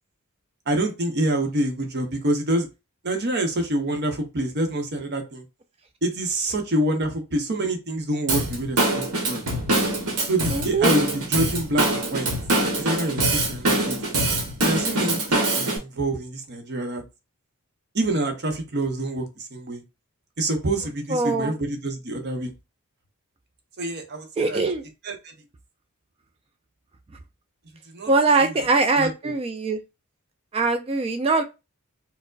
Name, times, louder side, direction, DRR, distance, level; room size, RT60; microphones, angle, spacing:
voice 1, 0.7-2.7 3.0-5.4 6.0-9.4 10.2-12.3 12.8-14.0 14.6-17.0 17.9-19.8 20.4-22.5 23.8-24.6 25.0-25.3 27.9-28.1 28.4-28.7 29.0-29.3, right 1 dB, 50° right, 5 dB, 0.7 m, -26 dB
Drum kit / Drum, 8.3-15.8, right 1 dB, 85° right, 1.1 m, -24 dB
voice 2, 10.5-10.9 21.1-21.5 24.4-24.8 28.1-29.8 30.5-31.4, right 3 dB, 25° right, 7 dB, 0.3 m, -22 dB
4.3 x 2.0 x 2.4 m, 0.26 s
head